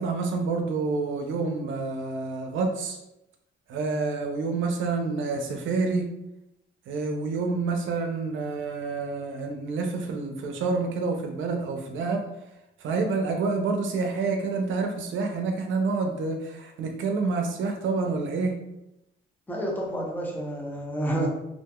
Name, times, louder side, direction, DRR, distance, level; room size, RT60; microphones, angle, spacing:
voice 1, 0.0-3.0 3.7-6.0 6.9-12.2 12.8-18.5, right 4 dB, 75° right, 3 dB, 0.5 m, -28 dB
voice 2, 19.5-21.3, right 1 dB, 10° left, -2 dB, 0.6 m, -29 dB
2.8 x 2.5 x 2.3 m, 0.88 s
cardioid pair, 90°, 20 cm